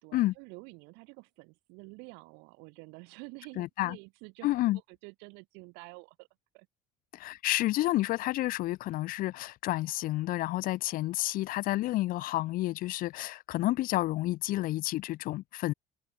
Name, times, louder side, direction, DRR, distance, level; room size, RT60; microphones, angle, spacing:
voice 1, 0.0-6.3 6.5-6.7, right 30 dB, 85° right, 2.3 m, -49 dB
voice 2, 3.6-4.0 4.4-4.8 7.1-15.7, left 17 dB, 55° left, 0.7 m, -30 dB
cardioid pair, 140°, 17 cm